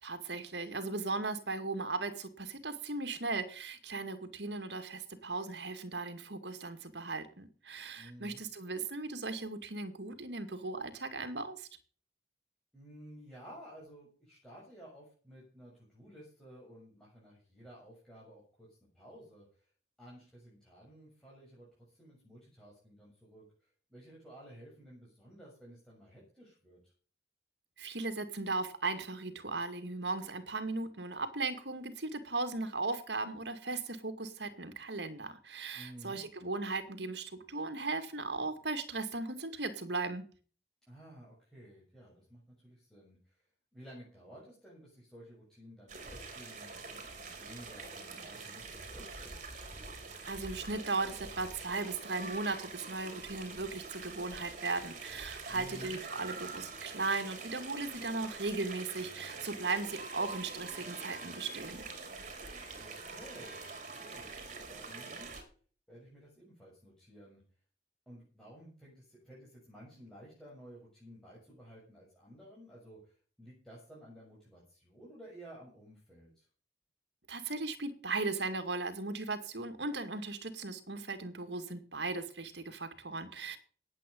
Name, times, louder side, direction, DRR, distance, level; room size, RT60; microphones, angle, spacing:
voice 1, 0.0-11.7 27.8-40.2 50.2-61.8 77.3-83.6, right 3 dB, 70° right, 9 dB, 2.3 m, -37 dB
voice 2, 8.0-8.4 12.7-19.7 20.0-26.9 35.7-36.2 40.9-43.5 43.7-49.5 55.5-56.0 62.8-63.6 63.9-65.3 65.9-67.4 68.1-76.5, equal, 5° left, -6 dB, 7.1 m, -54 dB
sound 1, 45.9-65.4, right 4 dB, 45° right, 4.4 m, -45 dB
18.0 x 8.5 x 5.4 m, 0.41 s
head